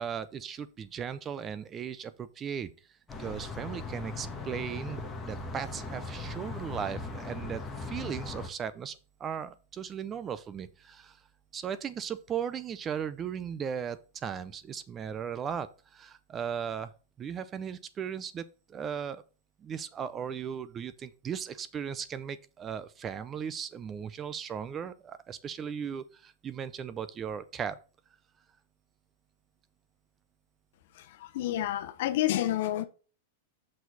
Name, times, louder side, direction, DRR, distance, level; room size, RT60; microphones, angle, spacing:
voice 1, 0.0-2.7 3.2-11.2 11.5-16.9 17.2-19.2 19.6-27.8, right 7 dB, 20° right, 0.5 m, -37 dB
sound 1, 3.1-8.5, left 3 dB, 15° left, 1.4 m, -39 dB
voice 2, 31.3-32.8, left 13 dB, 65° left, 0.9 m, -28 dB
6.3 x 4.6 x 4.1 m
supercardioid pair, 140°, 0 cm